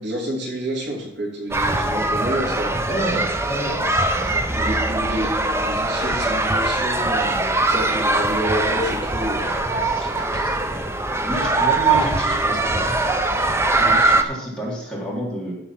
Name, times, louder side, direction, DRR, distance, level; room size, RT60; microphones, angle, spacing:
voice 1, 0.0-2.7 4.5-9.6 12.4-12.8, equal, 65° right, -4 dB, 3.5 m, -29 dB
sound 1, 1.5-14.2, right 2 dB, 15° right, 0.7 m, -21 dB
voice 2, 2.9-4.7 9.7-10.6 11.2-13.0 13.8-15.6, equal, 5° left, -6 dB, 3.4 m, -30 dB
14.0 x 4.9 x 5.9 m, 0.83 s
head